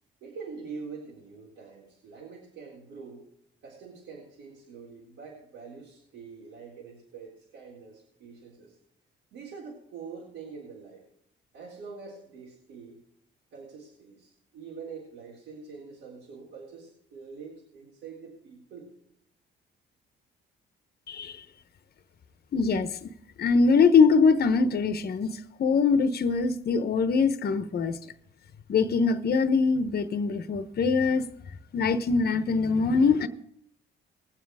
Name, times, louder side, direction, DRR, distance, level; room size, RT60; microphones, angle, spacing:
voice 1, 0.2-3.3 3.6-8.8 9.3-11.0 11.5-13.0 13.5-18.9, right 5 dB, 85° right, 3.8 m, -45 dB
voice 2, 22.5-23.1 23.4-28.0 28.7-31.3 31.7-33.3, left 5 dB, 50° left, 1.0 m, -23 dB
20.5 x 7.3 x 4.9 m
cardioid pair, 90°, 20 cm